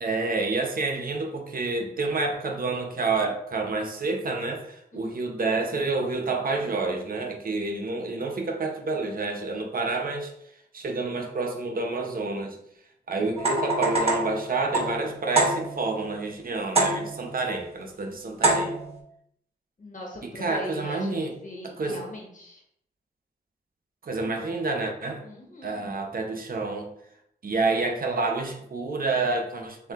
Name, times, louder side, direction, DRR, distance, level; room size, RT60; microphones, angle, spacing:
voice 1, 0.0-10.3 10.7-12.6 13.1-18.8 20.2-21.3 21.8-22.0 24.0-25.2 25.6-26.9 27.4-29.9, right 3 dB, 55° right, 3 dB, 0.8 m, -29 dB
voice 2, 4.9-5.3 19.8-22.6 25.2-25.9, left 1 dB, 50° left, -1 dB, 1.5 m, -41 dB
sound 1, 13.4-16.0 16.8-17.4 18.4-19.0, right 2 dB, 35° right, 1.4 m, -25 dB
6.8 x 2.7 x 2.4 m, 0.74 s
cardioid pair, 60°, 17 cm